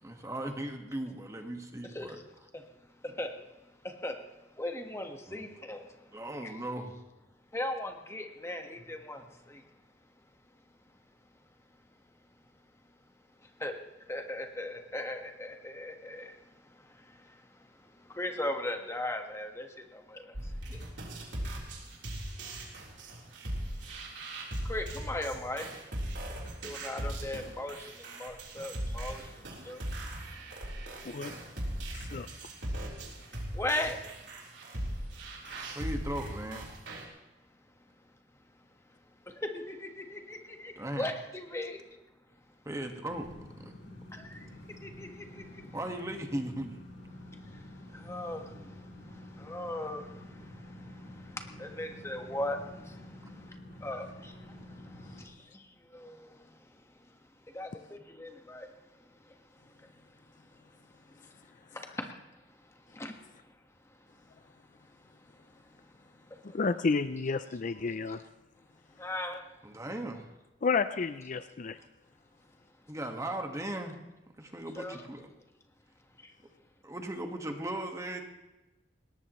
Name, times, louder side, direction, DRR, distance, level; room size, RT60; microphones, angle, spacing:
voice 1, 0.0-2.2 5.3-5.4 6.1-6.9 35.7-36.6 40.7-41.1 42.6-43.3 43.6-43.7 45.7-46.8 48.5-48.7 50.1-50.2 50.5-50.6 69.6-70.3 72.9-74.0 74.4-75.3 76.8-78.2, right 1 dB, 15° right, 4 dB, 1.6 m, -37 dB
voice 2, 4.6-5.8 6.4-6.5 7.5-9.2 13.6-13.7 14.1-16.3 18.2-19.7 19.9-20.2 20.7-20.8 24.7-25.7 26.6-27.7 28.2-29.2 29.7-29.8 33.5-34.0 39.5-41.8 44.1-44.3 44.8-45.2 47.9-48.4 49.4-50.0 51.6-52.6 53.8-54.3 55.9-56.2 57.5-58.7 62.0-62.1 63.0-63.1 69.0-69.4 74.7-75.0, left 1 dB, 15° left, 4 dB, 1.5 m, -37 dB
sound 1, 20.3-37.0, right 1 dB, 80° right, 3.8 m, -39 dB
sound 2, 43.1-55.3, left 1 dB, 80° left, 4.5 m, -49 dB
voice 3, 66.5-68.2 70.6-71.8, left 4 dB, 45° left, 12 dB, 0.4 m, -30 dB
20.5 x 18.0 x 3.1 m, 1.0 s
head